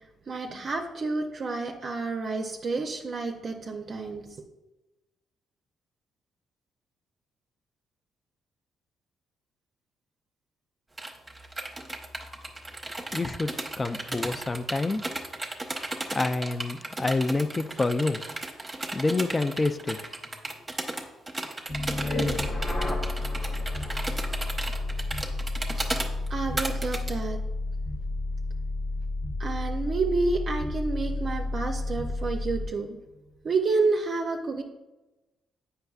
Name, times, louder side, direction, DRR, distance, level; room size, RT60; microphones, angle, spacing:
voice 1, 0.3-4.2 26.3-27.4 29.4-33.0 33.4-34.6, right 3 dB, 50° right, 3 dB, 0.5 m, -29 dB
sound 1, 11.0-27.1, right 2 dB, 20° right, 0.8 m, -35 dB
voice 2, 13.1-13.5 13.8-15.1 16.1-18.2 18.9-20.0, left 3 dB, 25° left, 11 dB, 0.3 m, -27 dB
sound 2, 21.7-32.8, left 2 dB, 45° left, 1.0 m, -31 dB
7.8 x 5.5 x 2.3 m, 1.0 s
cardioid pair, 90°, 0 cm